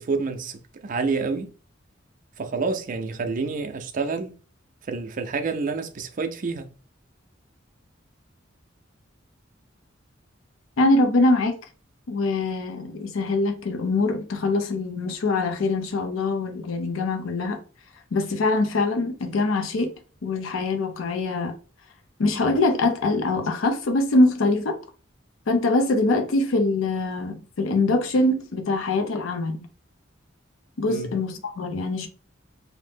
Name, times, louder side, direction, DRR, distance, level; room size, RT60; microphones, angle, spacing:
voice 1, 0.0-1.5 2.4-4.3 4.9-6.7 30.9-31.1, right 4 dB, 45° right, 0.4 m, -28 dB
voice 2, 10.8-11.6 12.1-17.6 18.1-19.9 20.2-21.5 22.2-24.8 25.5-29.7 30.8-32.1, left 2 dB, 85° left, 0.5 m, -23 dB
2.6 x 2.0 x 3.3 m
head